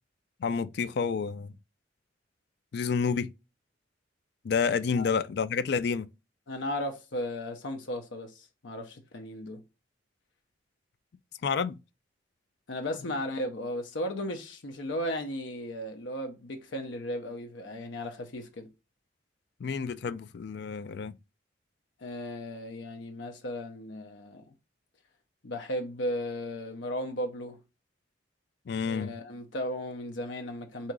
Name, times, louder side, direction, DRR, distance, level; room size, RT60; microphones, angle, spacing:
voice 1, 0.4-1.5 2.7-3.3 4.4-6.1 11.4-11.8 19.6-21.2 28.7-29.1, left 5 dB, 60° left, 0.4 m, -29 dB
voice 2, 6.5-9.6 12.7-18.7 22.0-24.4 25.4-27.6 28.9-30.9, left 1 dB, 90° left, 0.7 m, -35 dB
3.7 x 2.8 x 4.6 m
head